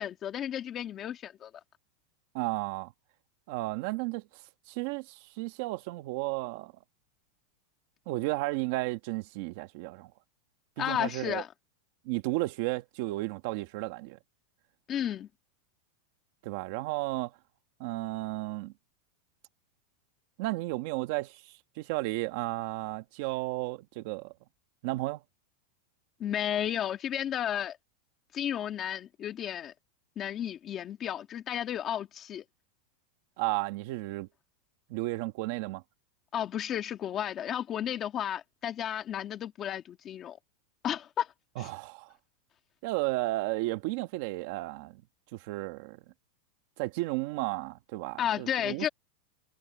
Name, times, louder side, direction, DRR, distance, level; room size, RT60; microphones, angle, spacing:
voice 1, 0.0-1.5 10.8-11.5 14.9-15.3 26.2-27.8 28.3-29.7 30.2-32.4 36.3-40.4 40.8-41.3 41.6-41.7 48.2-48.9, left 10 dB, 20° left, 1.9 m, -33 dB
voice 2, 2.3-2.9 3.5-6.7 8.1-10.1 10.8-11.4 12.0-14.2 16.4-17.3 17.8-18.7 20.4-24.3 24.8-25.2 33.4-34.3 34.9-35.8 41.6-42.1 42.8-45.0 45.3-46.0 46.8-48.9, right 20 dB, 45° right, 1.5 m, -33 dB
supercardioid pair, 175°, 0 cm